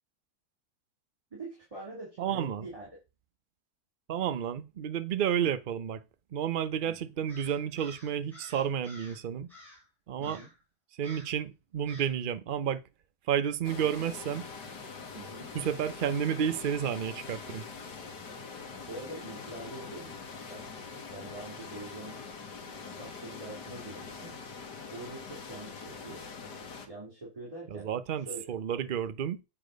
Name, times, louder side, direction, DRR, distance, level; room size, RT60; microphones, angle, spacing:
voice 1, 1.3-2.9 6.7-7.1 10.2-10.5 15.1-15.5 18.9-20.1 20.5-20.6 21.1-22.2 23.0-24.3 24.9-26.2 26.9-27.9 28.1-28.6, right 2 dB, 20° right, 3.0 m, -44 dB
voice 2, 2.2-2.7 4.1-6.0 6.3-9.5 10.1-10.4 10.9-12.8 13.3-14.5 15.5-17.7 27.7-29.4, right 9 dB, 50° right, 0.6 m, -31 dB
Crow, 7.3-9.2 9.5-9.9 10.2-10.6 11.0-11.4 11.9-12.2, left 1 dB, ahead, 4.6 m, -52 dB
sound 1, 13.6-26.9, left 5 dB, 85° left, 2.0 m, -44 dB
8.4 x 4.2 x 5.1 m
omnidirectional pair, 1.8 m